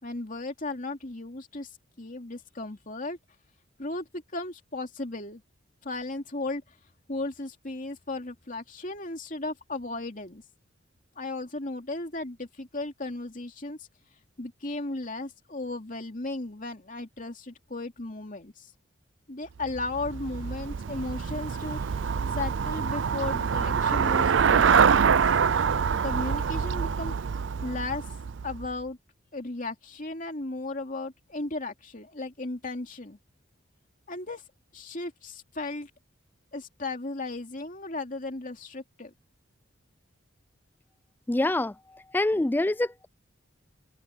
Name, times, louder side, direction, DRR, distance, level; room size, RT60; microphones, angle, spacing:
voice 1, 0.0-1.7 2.0-3.2 3.8-5.4 5.8-6.6 7.1-10.4 11.2-13.9 14.4-18.7 19.3-22.1 22.3-25.0 26.0-27.1 27.6-28.1 28.4-29.0 29.3-33.2 34.1-34.4 34.7-35.9 36.5-39.1, left 2 dB, 40° left, 2.8 m, -35 dB
Traffic noise roadway noise / Bicycle, 19.6-28.8, right 6 dB, 65° right, 0.5 m, -25 dB
voice 2, 41.3-41.7 42.1-43.1, left 2 dB, 10° left, 0.3 m, -25 dB
head